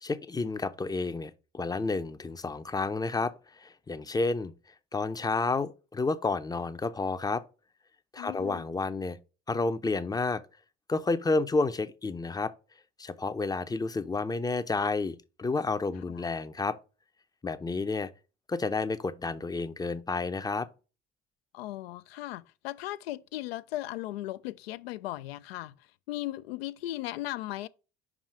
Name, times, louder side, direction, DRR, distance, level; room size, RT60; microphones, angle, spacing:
voice 1, 0.0-4.5 4.9-7.4 8.1-9.2 9.5-10.4 10.9-12.5 13.0-16.8 17.4-18.1 18.5-20.7, left 3 dB, 10° left, 0.6 m, -30 dB
voice 2, 8.2-8.7 16.1-16.2 21.5-25.7 26.1-27.7, left 15 dB, 65° left, 0.5 m, -37 dB
5.4 x 4.9 x 4.8 m
figure-of-eight pair, 55°, 32 cm